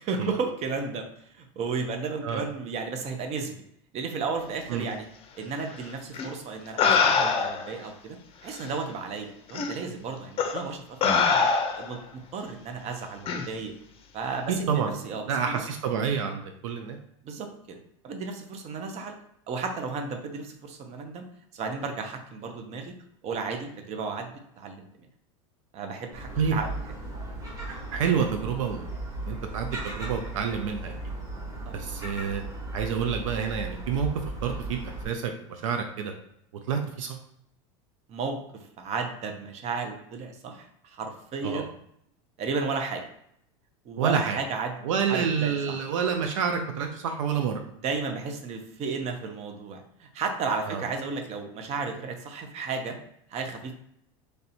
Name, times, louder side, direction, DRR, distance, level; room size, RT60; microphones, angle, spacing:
voice 1, 0.0-3.5 3.9-5.1 5.4-11.1 11.7-13.7 14.1-15.6 17.2-17.8 18.0-19.1 19.5-21.2 21.5-22.9 23.2-24.9 25.7-26.7 31.7-31.8 38.1-41.7 42.4-43.0 43.8-44.7 45.1-45.5 47.7-53.0 53.3-53.7, right 4 dB, 40° right, 5 dB, 0.8 m, -33 dB
sound 1, 6.1-6.3 6.8-7.7 8.6-8.7 9.5-9.7 10.4-10.6 11.0-12.0 13.3-13.5, left 5 dB, 35° left, 0.6 m, -23 dB
voice 2, 14.7-15.0 15.2-17.0 26.4-26.6 27.6-30.9 31.7-32.4 32.7-34.1 34.4-36.1 36.7-37.2 41.4-41.7 44.0-44.4 44.8-47.6 50.6-50.8, right 7 dB, 80° right, 4 dB, 0.5 m, -28 dB
Gull seagull, 26.1-35.0, right 2 dB, 20° right, 1.4 m, -36 dB
3.3 x 2.6 x 4.2 m, 0.74 s
supercardioid pair, 105°, 16 cm